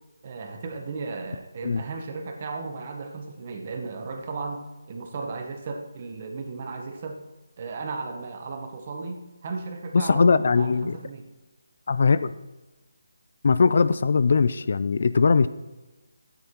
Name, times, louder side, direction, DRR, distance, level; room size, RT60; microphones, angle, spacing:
voice 1, 0.2-4.6 4.9-7.2 7.6-10.2 10.5-11.2, right 4 dB, 30° right, 4 dB, 1.0 m, -35 dB
voice 2, 9.9-10.9 11.9-12.3 13.4-15.5, left 4 dB, 50° left, 15 dB, 0.3 m, -20 dB
12.5 x 9.6 x 3.0 m, 1.1 s
hypercardioid pair, 170°, 0 cm